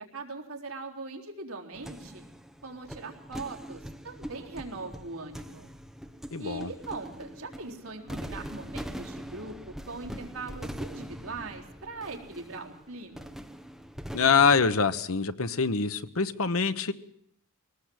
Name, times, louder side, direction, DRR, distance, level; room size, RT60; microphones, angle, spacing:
voice 1, 0.0-2.2 2.6-5.7 6.4-13.3, right 3 dB, 75° right, 0 dB, 3.9 m, -41 dB
sound 1, 1.7-14.7, equal, ahead, 1.2 m, -42 dB
voice 2, 6.3-6.7 14.1-16.9, left 5 dB, 75° left, 12 dB, 1.1 m, -24 dB
23.5 x 19.0 x 7.9 m, 0.70 s
head